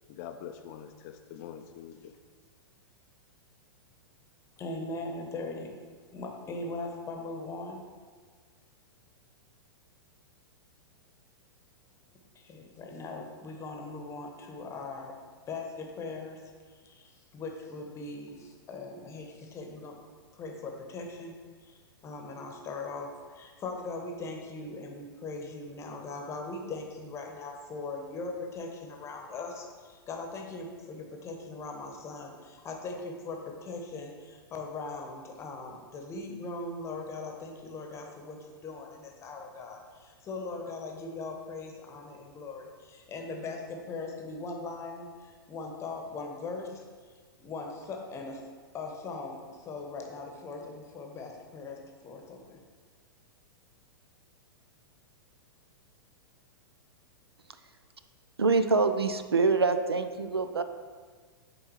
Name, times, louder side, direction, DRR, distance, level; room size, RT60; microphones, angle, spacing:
voice 1, 0.1-2.1, left 9 dB, 40° left, 7 dB, 0.4 m, -44 dB
voice 2, 4.6-5.7 6.1-7.8 12.3-15.1 15.5-16.4 16.7-20.0 20.3-46.8 47.4-48.4 48.7-52.6, left 3 dB, 20° left, 2 dB, 0.9 m, -40 dB
voice 3, 58.4-60.6, right 4 dB, 90° right, 9 dB, 0.4 m, -25 dB
8.5 x 3.8 x 3.0 m, 1.5 s
figure-of-eight pair, 105°, 13 cm